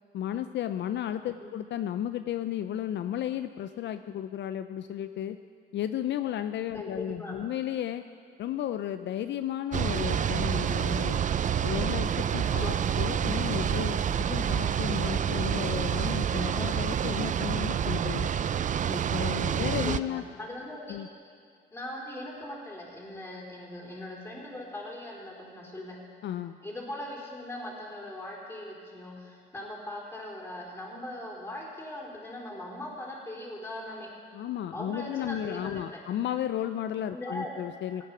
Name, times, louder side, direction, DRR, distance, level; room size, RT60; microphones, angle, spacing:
voice 1, 0.1-5.4 5.7-8.0 8.4-11.2 11.6-18.3 18.9-20.2 20.9-21.1 26.2-26.6 34.3-38.0, left 11 dB, 65° left, 10 dB, 0.5 m, -33 dB
voice 2, 6.7-7.5 12.3-13.2 19.5-21.0 21.7-26.0 26.6-34.1 34.7-36.0 37.1-37.5, left 1 dB, 10° left, -3 dB, 4.1 m, -40 dB
sound 1, 9.7-20.0, right 8 dB, 40° right, 0.4 m, -28 dB
17.5 x 9.2 x 6.1 m, 2.2 s
cardioid pair, 90°, 20 cm